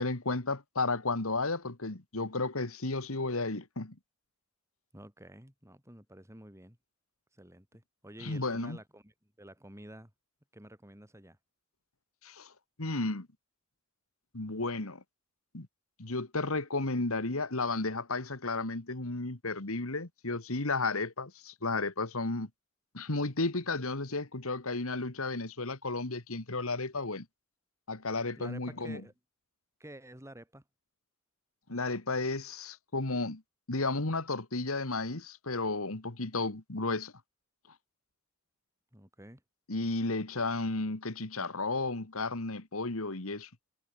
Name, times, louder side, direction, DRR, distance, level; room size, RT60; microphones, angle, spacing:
voice 1, 0.0-4.0 8.2-8.8 12.2-12.5 12.8-13.3 14.3-15.0 15.5-15.7 16.0-22.5 22.9-27.3 27.9-29.0 31.7-33.4 33.7-37.1 39.7-43.5, left 3 dB, 70° left, 2.1 m, -33 dB
voice 2, 4.9-6.8 7.3-9.1 9.4-10.1 10.5-11.4 28.4-29.1 29.8-30.6 38.9-39.4, right 1 dB, 15° right, 4.4 m, -50 dB
head